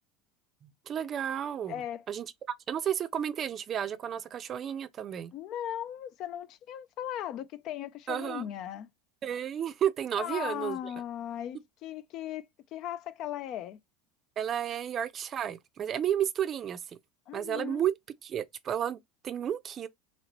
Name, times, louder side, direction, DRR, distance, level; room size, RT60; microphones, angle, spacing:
voice 1, 0.6-1.7 2.1-2.3 2.7-5.3 8.1-8.4 9.2-10.8 14.4-17.0 17.3-17.9 18.2-19.9, right 9 dB, 40° right, 0.4 m, -32 dB
voice 2, 1.7-2.1 5.3-8.9 10.1-13.8 17.3-17.8, left 11 dB, 55° left, 0.3 m, -38 dB
2.9 x 2.8 x 2.9 m
hypercardioid pair, 85°, 0 cm